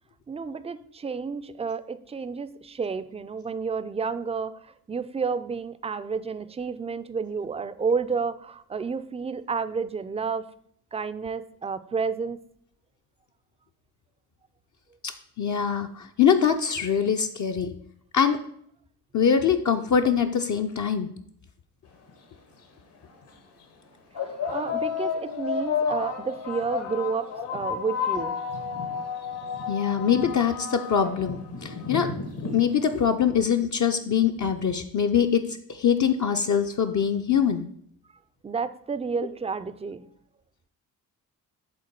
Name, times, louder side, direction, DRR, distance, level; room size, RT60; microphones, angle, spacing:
voice 1, 0.3-10.4 10.9-12.4 24.5-28.4 38.4-40.0, right 5 dB, 15° right, 13 dB, 0.4 m, -30 dB
voice 2, 15.4-17.8 18.1-18.4 19.1-21.1 29.7-32.1 32.5-37.7, left 7 dB, 45° left, 4 dB, 0.6 m, -23 dB
sound 1, 22.1-22.2 23.1-23.3 24.1-33.0, left 6 dB, 70° left, 1.5 m, -31 dB
7.6 x 3.6 x 4.5 m, 0.68 s
supercardioid pair, 50°, 42 cm